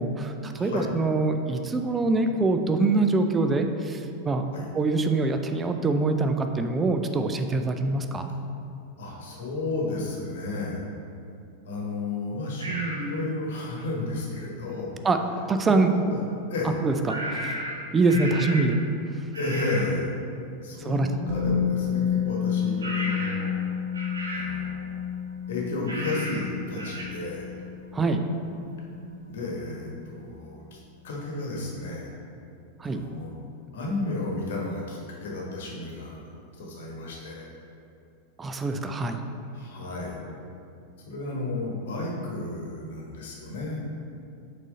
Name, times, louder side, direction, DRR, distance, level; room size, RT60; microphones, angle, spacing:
voice 1, 0.0-4.4 4.7-8.3 15.0-15.9 16.8-17.6 17.9-18.8 20.9-21.1 27.9-28.2 32.8-33.0 38.4-39.2, right 3 dB, 15° right, 6 dB, 0.4 m, -24 dB
voice 2, 0.5-0.9 4.5-4.6 9.0-10.8 11.6-14.9 15.7-16.2 16.5-16.7 18.2-18.8 19.3-20.1 20.6-23.6 24.3-25.0 25.5-27.5 29.3-30.8 31.0-32.1 32.8-33.4 33.7-36.2 36.6-37.5 39.5-40.2 41.1-43.8, left 2 dB, 60° left, -2 dB, 1.2 m, -32 dB
sound 1, 12.6-13.0 17.1-18.8 19.3-19.9 22.8-23.5 23.9-24.6 25.9-26.5 26.8-27.0, equal, 70° right, 0.9 m, -34 dB
Musical instrument, 21.3-29.2 29.5-29.6, left 8 dB, 45° right, 0.9 m, -30 dB
6.1 x 4.1 x 3.8 m, 2.6 s
figure-of-eight pair, 90°, 0 cm